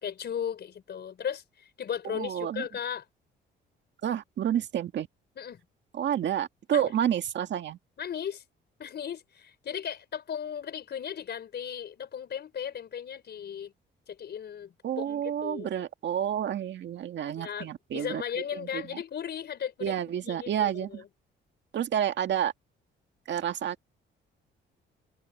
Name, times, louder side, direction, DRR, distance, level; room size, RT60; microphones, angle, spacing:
voice 1, 0.0-3.0 5.4-5.6 6.7-6.9 8.0-8.4 8.8-13.7 14.1-15.7 17.4-19.9 20.2-21.0, left 8 dB, 55° left, 4.7 m, -36 dB
voice 2, 2.0-2.7 4.0-5.1 5.9-7.8 14.8-18.2 18.5-19.0 19.8-21.0 21.7-22.5 23.3-23.8, right 10 dB, 65° right, 1.9 m, -30 dB
cardioid pair, 90°, 20 cm